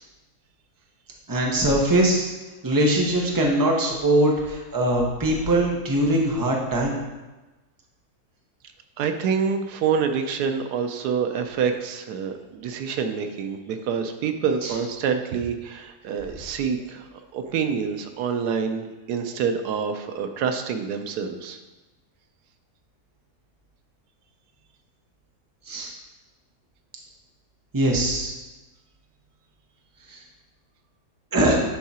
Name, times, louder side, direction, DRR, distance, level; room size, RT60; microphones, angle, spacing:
voice 1, 1.3-2.3 2.6-7.0 14.6-14.7 25.7-25.9 27.7-28.3 30.1-30.2 31.3-31.5, right 1 dB, 15° right, -1 dB, 0.8 m, -21 dB
voice 2, 9.0-21.6, right 6 dB, 90° right, 7 dB, 1.2 m, -27 dB
10.5 x 3.7 x 4.2 m, 1.1 s
omnidirectional pair, 1.7 m